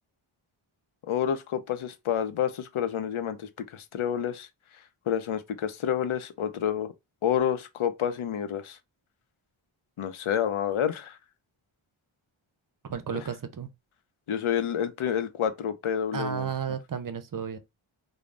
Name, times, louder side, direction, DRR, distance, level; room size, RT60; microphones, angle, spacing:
voice 1, 1.0-4.5 5.1-6.9 7.2-8.8 10.0-11.2 14.3-16.5, left 9 dB, 75° left, 0.6 m, -29 dB
voice 2, 12.9-13.7 16.1-17.6, right 7 dB, 45° right, 0.5 m, -33 dB
3.2 x 2.0 x 2.4 m
wide cardioid pair, 55°, 50 cm